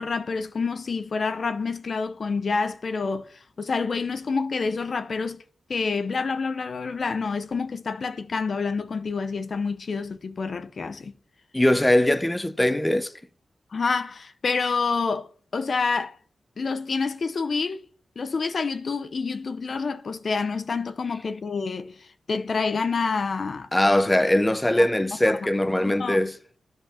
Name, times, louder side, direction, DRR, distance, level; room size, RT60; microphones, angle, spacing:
voice 1, 0.0-5.4 5.7-11.1 13.7-16.2 16.6-17.8 18.2-23.7 24.8-24.9 25.3-25.5 25.8-26.2, left 4 dB, 60° left, 0.8 m, -28 dB
voice 2, 11.5-13.1 23.7-26.3, left 1 dB, 15° left, 0.8 m, -21 dB
10.5 x 5.3 x 7.2 m
cardioid pair, 75°, 0 cm